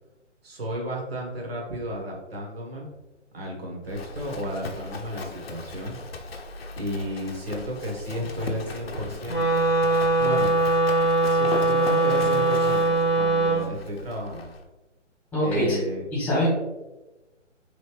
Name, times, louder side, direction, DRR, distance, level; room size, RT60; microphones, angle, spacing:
voice 1, 0.4-2.9 3.3-6.0 6.7-10.5 11.3-14.5 15.4-16.0, equal, 55° right, -1 dB, 1.5 m, -33 dB
Livestock farm animals working animals, 3.8-14.6, left 3 dB, 55° left, 0.7 m, -38 dB
Wind instrument woodwind instrument, 9.3-13.7, right 2 dB, 20° left, 1.0 m, -21 dB
voice 2, 15.3-15.8 16.1-16.5, equal, 5° left, -6 dB, 1.5 m, -23 dB
5.0 x 3.2 x 3.2 m, 1.0 s
figure-of-eight pair, 140°, 37 cm